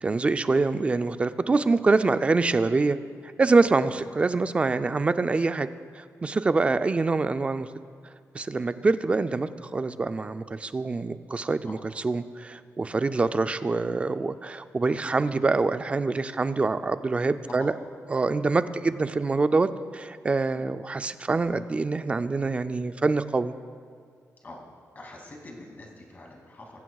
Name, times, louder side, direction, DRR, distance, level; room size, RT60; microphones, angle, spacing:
voice 1, 0.0-3.0 3.4-5.7 6.0-7.7 8.3-11.8 12.0-17.7 18.1-23.5, right 3 dB, 20° right, 11 dB, 0.4 m, -25 dB
voice 2, 17.5-17.8 18.8-18.9 24.4-24.6 24.9-26.8, left 2 dB, 30° left, 0 dB, 2.5 m, -45 dB
20.5 x 15.5 x 2.4 m, 2.2 s
wide cardioid pair, 170°, 6 cm